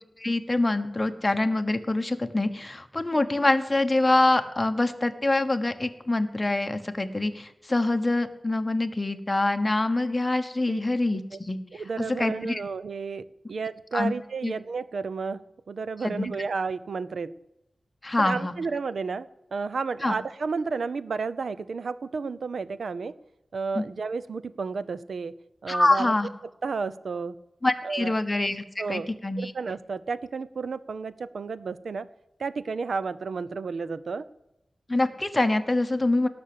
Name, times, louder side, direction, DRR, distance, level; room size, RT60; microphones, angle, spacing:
voice 1, 0.2-12.6 13.9-14.1 14.4-14.5 16.0-16.3 18.0-18.5 20.0-20.1 23.7-23.8 25.7-26.3 27.6-29.5 34.9-36.3, left 2 dB, 20° left, 7 dB, 1.1 m, -25 dB
voice 2, 11.7-15.4 15.7-17.3 18.2-23.1 23.5-25.3 25.6-26.1 26.6-27.3 27.8-28.1 28.8-29.1 29.4-32.1 32.4-34.2, right 4 dB, 85° right, 15 dB, 0.6 m, -32 dB
18.0 x 6.2 x 8.5 m, 0.87 s
wide cardioid pair, 105°, 0 cm